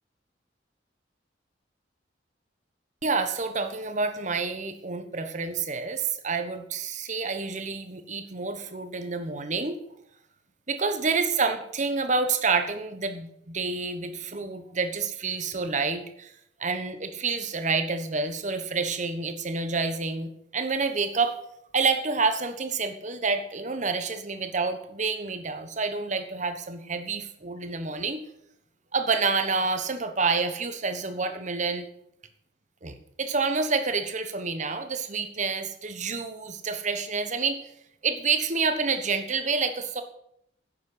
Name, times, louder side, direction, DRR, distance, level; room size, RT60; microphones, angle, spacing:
voice 1, 3.0-9.8 10.7-16.3 16.6-21.4 21.7-28.2 28.9-31.8 32.8-37.6 38.0-40.0, right 4 dB, 40° right, 8 dB, 1.2 m, -28 dB
10.5 x 7.3 x 8.0 m, 0.75 s
head